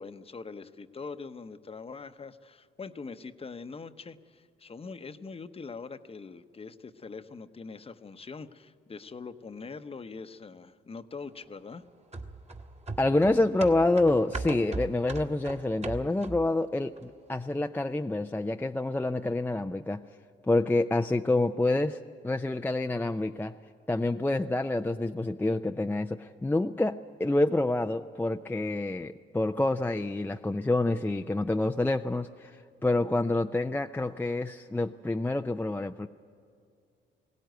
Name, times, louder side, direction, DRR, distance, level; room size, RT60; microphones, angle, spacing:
voice 1, 0.0-11.8, left 4 dB, 30° left, 10 dB, 0.9 m, -43 dB
sound 1, 12.1-16.6 17.0-17.1, right 3 dB, 35° right, 1.6 m, -38 dB
voice 2, 13.0-20.0 20.5-22.0 22.2-23.6 23.9-36.1, left 2 dB, 10° left, 6 dB, 0.5 m, -27 dB
21.0 x 17.0 x 9.2 m, 2.3 s
cardioid pair, 90°, 20 cm